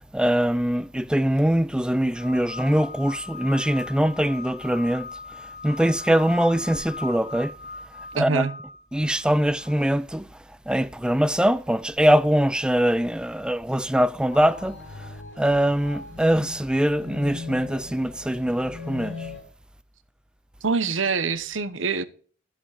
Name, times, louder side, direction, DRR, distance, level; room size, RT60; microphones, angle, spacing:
voice 1, 0.1-5.1 5.6-7.5 8.1-8.5 8.9-10.3 10.7-19.3, equal, 5° right, 0.4 m, -23 dB
sound 1, 2.1-9.9, left 4 dB, 40° left, 1.2 m, -39 dB
voice 2, 8.1-8.5 20.6-22.0, right 4 dB, 75° right, 1.0 m, -25 dB
sound 2, 14.3-19.4, left 3 dB, 60° left, 5.1 m, -39 dB
11.5 x 7.7 x 4.9 m
head